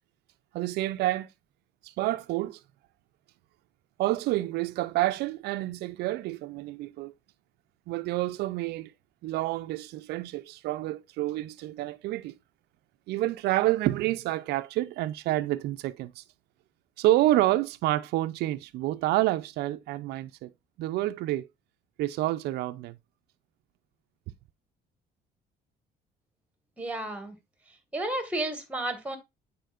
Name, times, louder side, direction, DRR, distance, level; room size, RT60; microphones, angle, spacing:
voice 1, 0.5-1.3 1.8-2.6 4.0-7.1 7.9-8.9 9.2-12.3 13.1-16.2 17.0-20.5 20.8-21.5 22.0-23.0, right 16 dB, 75° right, 0.4 m, -28 dB
voice 2, 26.8-27.4 27.9-29.2, right 1 dB, 10° right, 1.5 m, -32 dB
9.2 x 4.3 x 2.4 m
cardioid pair, 110°, 17 cm